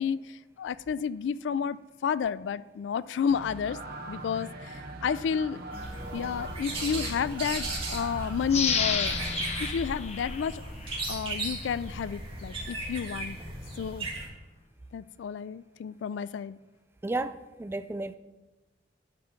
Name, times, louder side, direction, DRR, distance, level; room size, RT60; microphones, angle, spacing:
voice 1, 0.0-1.8 2.0-3.8 4.1-5.6 6.1-9.2 9.6-10.6 11.1-13.4 13.8-14.1 14.9-16.6, left 7 dB, 80° left, 18 dB, 0.3 m, -31 dB
sound 1, 3.3-9.7, right 1 dB, 55° right, 1.3 m, -41 dB
sound 2, 5.7-14.3, right 2 dB, 30° right, 2.3 m, -36 dB
sound 3, 8.5-11.2 11.6-11.7, left 6 dB, 35° left, 0.7 m, -31 dB
voice 2, 17.0-17.3 17.6-18.2, right 2 dB, 15° right, 11 dB, 0.3 m, -32 dB
11.5 x 6.9 x 3.8 m, 1.2 s
head